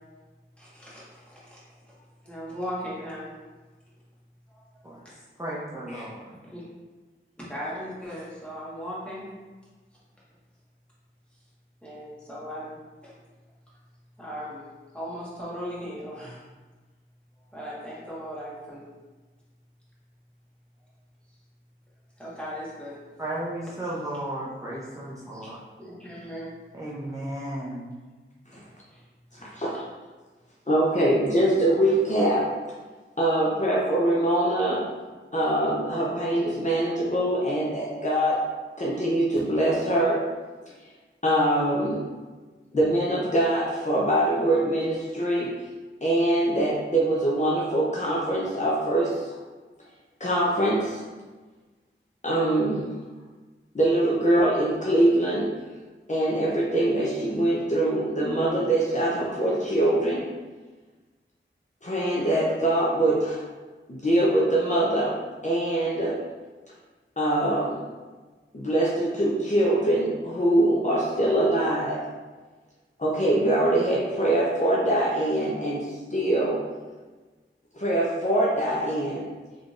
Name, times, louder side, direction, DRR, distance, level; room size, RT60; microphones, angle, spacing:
voice 1, 0.6-1.6 1.8-1.9 2.2-3.2 6.5-6.6 7.4-9.3 11.8-12.7 13.0-13.1 14.2-14.6 14.9-16.4 17.5-18.8 22.2-23.0 25.3-25.4 25.8-26.5 28.9-29.0 29.3-29.8, equal, 5° left, -8 dB, 1.4 m, -37 dB
voice 2, 5.4-6.3 23.2-25.6 26.7-27.8, right 1 dB, 15° right, -7 dB, 0.6 m, -34 dB
voice 3, 29.4-29.7 30.7-32.5 33.2-34.8 35.3-38.4 38.8-40.2 41.2-42.0 42.7-45.5 46.0-49.3 50.2-51.0 52.2-52.9 53.7-55.5 56.1-60.2 61.8-63.4 63.9-65.1 65.4-66.2 67.2-67.8 68.5-72.0 73.0-76.6 77.7-79.3, right 1 dB, 35° left, -5 dB, 0.6 m, -23 dB
3.7 x 3.3 x 2.5 m, 1.3 s
wide cardioid pair, 60°, 21 cm